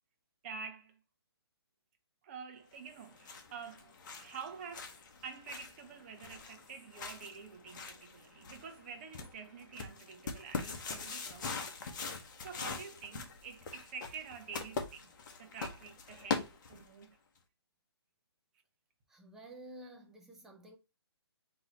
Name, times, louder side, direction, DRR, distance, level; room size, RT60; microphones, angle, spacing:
voice 1, 0.4-1.0 2.2-3.9 4.2-15.1 15.4-17.2, right 6 dB, 30° right, 0.8 m, -48 dB
sound 1, 2.9-17.0, left 5 dB, 45° left, 1.1 m, -43 dB
voice 2, 19.1-20.8, right 1 dB, 5° right, 0.4 m, -51 dB
3.8 x 3.0 x 4.0 m
hypercardioid pair, 160°, 14 cm